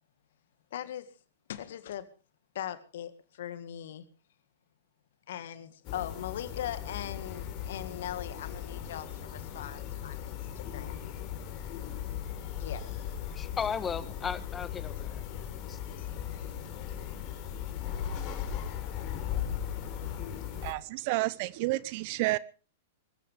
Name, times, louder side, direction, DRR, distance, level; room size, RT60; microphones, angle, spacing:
voice 1, 0.7-1.1 1.5-2.0 2.5-4.1 5.3-11.0 12.6-12.9 16.0-16.1, left 11 dB, 65° left, 1.9 m, -40 dB
sound 1, 5.8-20.7, left 9 dB, 45° left, 4.2 m, -38 dB
voice 2, 13.3-15.2 15.7-15.8, left 6 dB, 20° left, 1.5 m, -35 dB
voice 3, 20.6-22.4, right 20 dB, 50° right, 0.7 m, -30 dB
23.5 x 14.5 x 3.5 m
hypercardioid pair, 105°, 0 cm